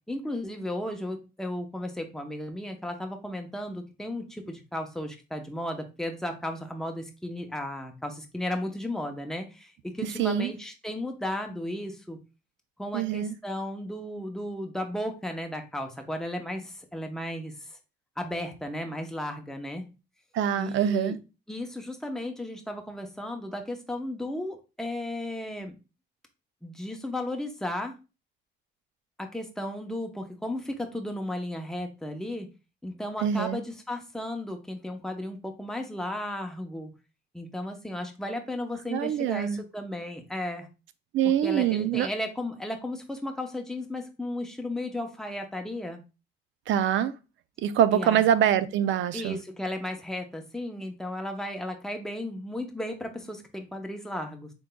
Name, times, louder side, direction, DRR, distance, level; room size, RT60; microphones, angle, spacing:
voice 1, 0.1-12.2 12.8-17.5 18.2-19.9 20.6-21.2 21.5-25.7 26.6-28.0 29.2-32.5 32.8-36.9 37.3-40.7 41.4-46.0 47.9-48.2 49.1-54.5, left 1 dB, 5° left, 0.7 m, -34 dB
voice 2, 10.2-10.5 12.9-13.3 20.3-21.2 33.2-33.6 38.9-39.6 41.1-42.1 46.7-47.1 47.6-49.4, right 9 dB, 75° right, 0.4 m, -24 dB
3.8 x 3.6 x 2.2 m
cardioid pair, 90°, 20 cm